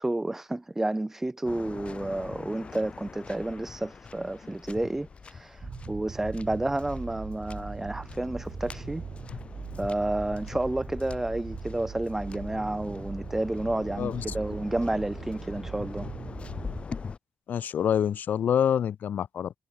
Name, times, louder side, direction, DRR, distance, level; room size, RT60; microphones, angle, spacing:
voice 1, 0.0-9.0 9.8-16.1, right 2 dB, 10° right, 0.8 m, -30 dB
Waves surf, 1.4-17.2, left 5 dB, 35° left, 7.5 m, -42 dB
sound 1, 5.6-16.8, right 6 dB, 45° right, 1.9 m, -41 dB
voice 2, 17.5-19.5, left 9 dB, 60° left, 0.7 m, -26 dB
cardioid pair, 125°, 3 cm